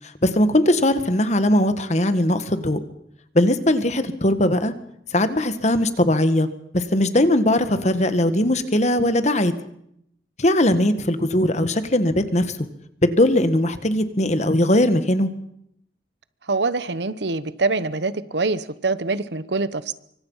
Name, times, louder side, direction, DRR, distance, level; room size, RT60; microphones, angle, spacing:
voice 1, 0.2-2.8 3.4-4.7 5.1-6.5 6.7-9.5 10.4-12.6 13.0-15.3, left 1 dB, 40° left, 10 dB, 1.7 m, -19 dB
voice 2, 16.5-19.9, right 3 dB, 80° right, 15 dB, 1.1 m, -24 dB
26.0 x 24.5 x 5.7 m, 0.74 s
head